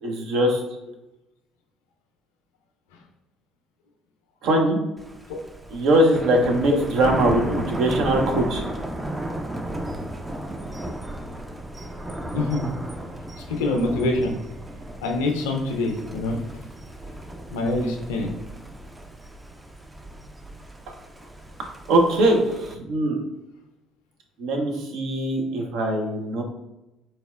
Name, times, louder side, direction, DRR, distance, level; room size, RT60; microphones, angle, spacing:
voice 1, 0.0-0.6 4.4-4.8 5.7-8.6 21.9-22.4 22.8-23.2 24.4-26.4, right 1 dB, 65° right, 2 dB, 0.6 m, -21 dB
Thunder, 5.0-22.7, right 1 dB, 15° right, 0.4 m, -35 dB
voice 2, 12.3-12.7 13.5-14.3 15.0-16.4 17.5-18.3, left 2 dB, 75° left, 2 dB, 0.4 m, -25 dB
4.0 x 2.1 x 2.3 m, 0.95 s
hypercardioid pair, 55°, 0 cm